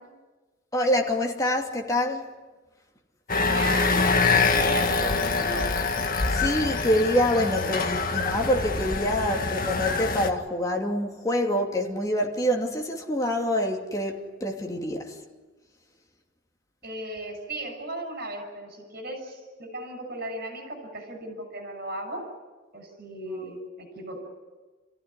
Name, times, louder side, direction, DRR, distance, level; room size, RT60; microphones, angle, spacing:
voice 1, 0.7-2.3 6.3-15.1, left 1 dB, 20° left, 2.8 m, -26 dB
sound 1, 3.3-10.3, left 4 dB, 45° left, 1.9 m, -25 dB
voice 2, 3.4-4.0 4.4-5.7 16.8-22.3 22.7-24.2, right 1 dB, 55° right, 6.7 m, -36 dB
29.0 x 16.0 x 9.9 m
head